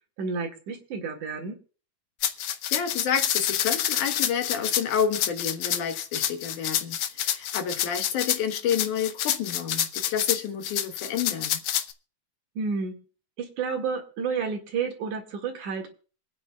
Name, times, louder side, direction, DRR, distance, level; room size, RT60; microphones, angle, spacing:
voice 1, 0.2-1.6 12.6-12.9 13.4-15.9, right 5 dB, 90° right, 3.4 m, -30 dB
sound 1, 2.2-11.9, left 11 dB, 70° left, 1.4 m, -28 dB
voice 2, 2.7-11.6, left 7 dB, 85° left, 2.8 m, -29 dB
26.0 x 9.5 x 2.3 m
omnidirectional pair, 3.4 m